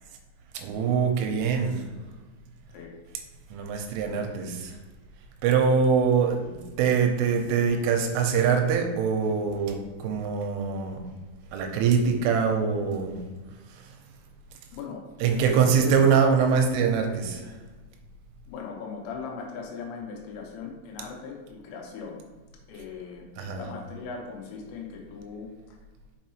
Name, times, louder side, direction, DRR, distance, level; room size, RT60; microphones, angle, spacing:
voice 1, 0.5-1.8 3.5-4.8 5.4-11.0 11.5-13.2 13.8-13.9 15.2-17.5 23.4-23.6, right 6 dB, 90° right, 4 dB, 3.2 m, -24 dB
voice 2, 14.7-16.1 16.5-16.6 18.5-22.2 22.7-25.8, left 5 dB, 85° left, 0 dB, 3.5 m, -39 dB
6.5 x 5.4 x 3.0 m, 1.3 s
omnidirectional pair, 5.7 m